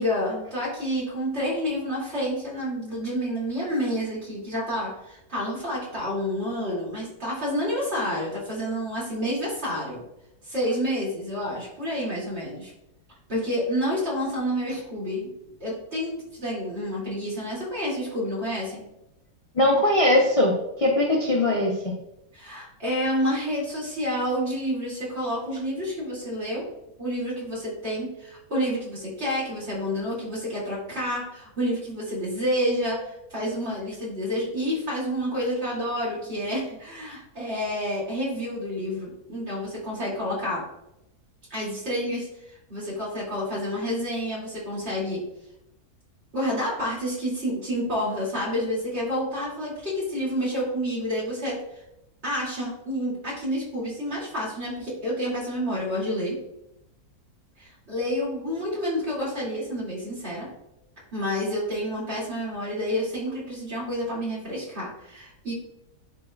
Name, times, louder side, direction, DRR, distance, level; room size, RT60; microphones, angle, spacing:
voice 1, 0.0-10.0 10.4-12.7 13.3-15.3 15.6-18.8 22.3-26.6 27.0-40.6 41.5-45.2 46.3-51.6 52.2-56.4 57.6-60.5 61.1-65.5, equal, 40° right, -6 dB, 3.0 m, -29 dB
voice 2, 19.5-21.7, left 1 dB, 30° left, -2 dB, 0.7 m, -20 dB
11.0 x 4.0 x 2.4 m, 0.85 s
omnidirectional pair, 1.7 m